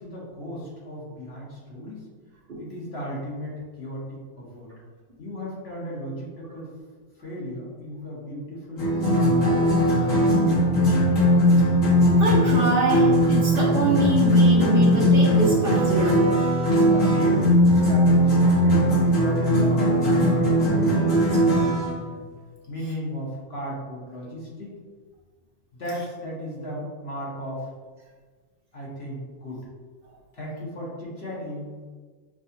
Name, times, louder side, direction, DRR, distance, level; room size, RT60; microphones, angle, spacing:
voice 1, 0.0-2.0 2.6-4.7 5.2-6.7 7.2-9.3 9.9-11.7 16.9-18.8 19.2-22.3 22.7-24.8 25.7-27.7 28.7-29.7 30.3-31.8, equal, 55° left, -6 dB, 1.3 m, -36 dB
sound 1, 8.8-21.9, equal, 85° left, 1.6 m, -19 dB
voice 2, 11.9-16.2, right 2 dB, 50° right, -6 dB, 1.0 m, -25 dB
6.0 x 2.4 x 2.7 m, 1.5 s
omnidirectional pair, 1.3 m